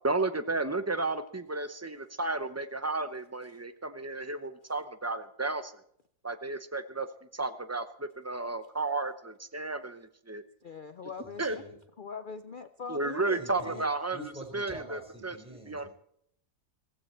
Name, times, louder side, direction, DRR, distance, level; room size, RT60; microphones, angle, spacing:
voice 1, 0.0-5.7 6.2-7.1 7.3-10.4 11.4-11.6 12.9-14.2 14.5-15.4 15.7-15.9, right 3 dB, 20° right, 10 dB, 0.4 m, -33 dB
voice 2, 10.6-11.7 12.0-13.8, left 5 dB, 70° left, 10 dB, 0.4 m, -42 dB
voice 3, 11.2-11.8 13.3-13.9 14.1-15.9, right 1 dB, 5° right, 1 dB, 4.2 m, -46 dB
15.5 x 15.5 x 4.4 m, 0.70 s
omnidirectional pair, 1.7 m